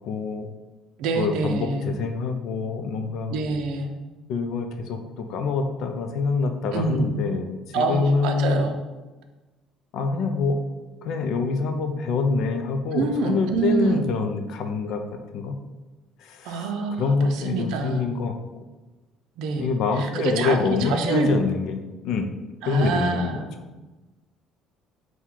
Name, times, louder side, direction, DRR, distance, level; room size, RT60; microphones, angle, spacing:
voice 1, 0.0-0.5 1.1-3.3 4.3-8.6 9.9-10.7 11.0-15.0 15.3-15.6 16.2-16.6 17.0-18.4 19.6-22.3 22.7-23.3, left 4 dB, 55° left, 6 dB, 0.4 m, -25 dB
voice 2, 1.0-1.9 3.3-3.9 6.7-7.2 7.7-8.7 12.9-14.0 16.4-18.1 19.4-21.4 22.6-23.5, right 4 dB, 75° right, 5 dB, 0.5 m, -26 dB
3.8 x 2.2 x 4.4 m, 1.2 s
cardioid pair, 165°, 0 cm